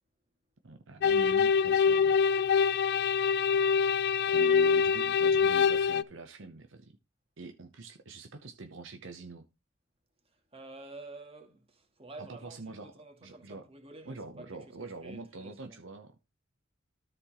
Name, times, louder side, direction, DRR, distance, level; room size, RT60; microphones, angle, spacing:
voice 1, 0.6-2.2 4.3-7.0 7.4-9.5 12.2-12.9 13.2-13.6 14.1-16.2, right 3 dB, 70° right, 0.9 m, -45 dB
sound 1, 1.0-6.0, left 6 dB, 55° left, 0.4 m, -25 dB
voice 2, 4.2-4.8 10.2-15.8, right 2 dB, 30° right, 2.2 m, -50 dB
13.0 x 4.4 x 4.3 m
head